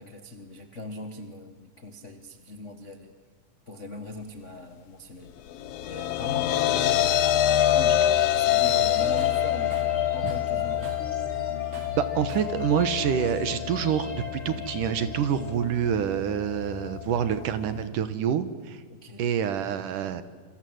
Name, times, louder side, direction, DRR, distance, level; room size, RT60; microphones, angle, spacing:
voice 1, 0.0-3.1 3.7-5.3 5.8-10.9 18.9-19.2, left 2 dB, 75° left, 6 dB, 0.6 m, -40 dB
sound 1, 5.5-17.8, left 11 dB, 90° left, 1.4 m, -26 dB
sound 2, 7.5-15.5, left 1 dB, 20° left, 6.4 m, -43 dB
Tools, 7.7-7.9 8.2-10.0 10.3-11.2 11.7-12.6, right 9 dB, 85° right, 3.4 m, -48 dB
voice 2, 11.9-18.8 19.2-20.2, right 8 dB, 65° right, 12 dB, 2.7 m, -27 dB
28.0 x 26.5 x 8.0 m, 1.5 s
omnidirectional pair, 4.2 m